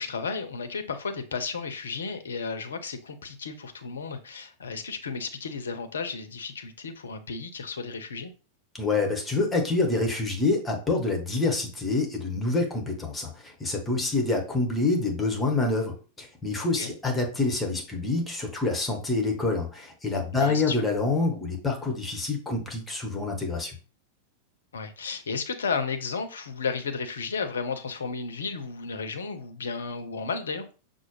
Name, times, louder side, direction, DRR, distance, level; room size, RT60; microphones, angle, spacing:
voice 1, 0.0-8.3 16.8-16.9 20.3-20.8 24.7-30.7, left 5 dB, 70° left, 8 dB, 0.6 m, -33 dB
voice 2, 8.8-23.8, left 3 dB, 15° left, 2 dB, 1.1 m, -27 dB
5.9 x 2.1 x 3.1 m, 0.36 s
figure-of-eight pair, 90°, 0 cm